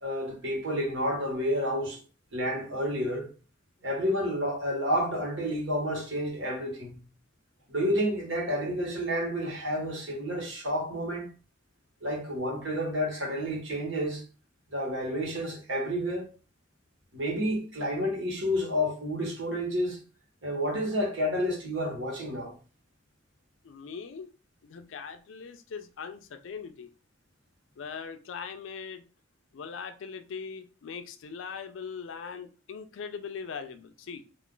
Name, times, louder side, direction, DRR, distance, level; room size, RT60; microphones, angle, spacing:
voice 1, 0.0-2.0 2.3-3.3 3.8-7.0 7.7-11.3 12.0-14.2 14.7-16.3 17.1-20.0 20.4-22.5, equal, 80° right, 1.2 m, -30 dB
voice 2, 23.6-24.3 24.6-26.9 27.8-29.1 29.5-34.2, left 6 dB, 90° left, 0.4 m, -40 dB
2.5 x 2.4 x 3.7 m
head